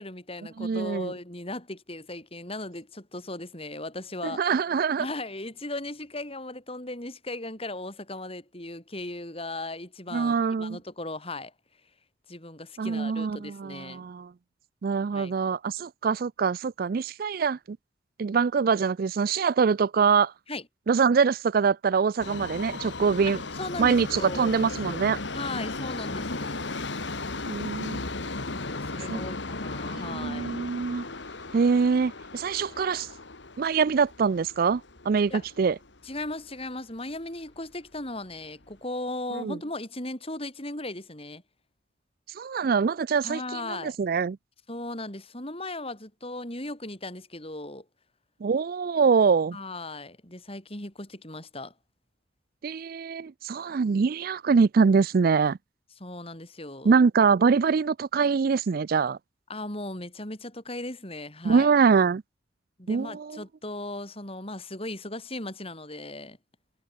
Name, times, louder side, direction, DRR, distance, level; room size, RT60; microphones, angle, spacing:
voice 1, 0.0-4.4 5.0-11.5 12.3-14.0 15.1-15.3 20.5-20.7 23.3-24.6 25.3-26.6 28.5-30.5 35.3-35.5 36.0-41.4 43.2-44.0 44.7-47.9 49.5-51.7 56.0-57.0 59.5-61.7 62.8-66.4, left 2 dB, 30° left, 6.9 m, -37 dB
voice 2, 0.6-1.1 4.2-5.1 10.1-10.8 12.8-14.3 14.8-17.8 18.2-20.3 20.9-23.4 23.8-25.2 27.5-28.0 29.1-29.2 29.9-31.1 31.5-33.1 33.6-34.8 35.1-35.8 39.3-39.6 42.4-44.4 48.4-49.6 52.6-55.6 56.8-59.2 61.4-62.2 62.9-63.4, right 5 dB, 50° right, 0.4 m, -24 dB
Subway metro underground, 22.2-36.3 36.6-36.7 37.6-37.7 37.9-38.0 38.7-38.8, left 3 dB, 70° left, 2.1 m, -36 dB
head